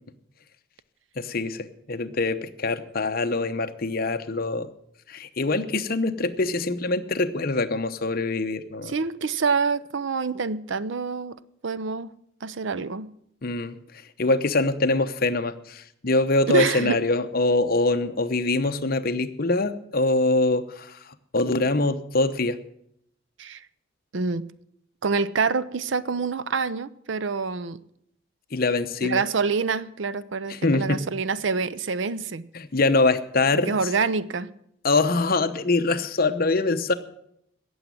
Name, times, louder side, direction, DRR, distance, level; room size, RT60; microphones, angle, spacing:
voice 1, 1.2-4.7 5.1-8.9 13.4-13.8 14.2-21.0 21.3-22.6 28.5-29.2 30.5-31.0 32.5-33.7 34.8-36.9, left 2 dB, 45° left, 0.9 m, -24 dB
voice 2, 8.8-11.4 11.6-12.1 12.4-13.1 16.5-17.0 23.4-23.6 24.1-24.5 25.0-27.8 29.0-32.4 33.5-34.5, right 4 dB, 65° right, 0.6 m, -26 dB
17.5 x 7.2 x 7.7 m
head